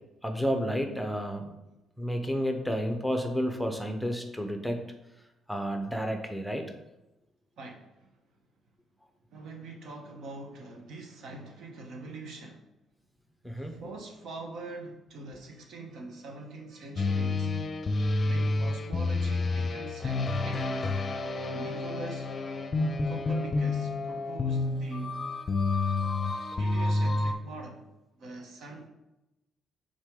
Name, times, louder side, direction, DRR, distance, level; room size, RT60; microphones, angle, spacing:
voice 1, 0.2-1.6 2.0-4.8 5.5-6.6 13.4-13.7, equal, ahead, 5 dB, 0.7 m, -31 dB
voice 2, 7.6-8.1 9.3-12.6 13.6-17.5 18.2-20.7 21.4-22.3 23.0-25.2 26.5-27.8 28.2-28.9, right 2 dB, 70° right, 2 dB, 1.1 m, -43 dB
sound 1, 17.0-27.3, left 3 dB, 35° left, 0.6 m, -29 dB
6.1 x 4.2 x 3.7 m, 0.97 s
cardioid pair, 90°, 0 cm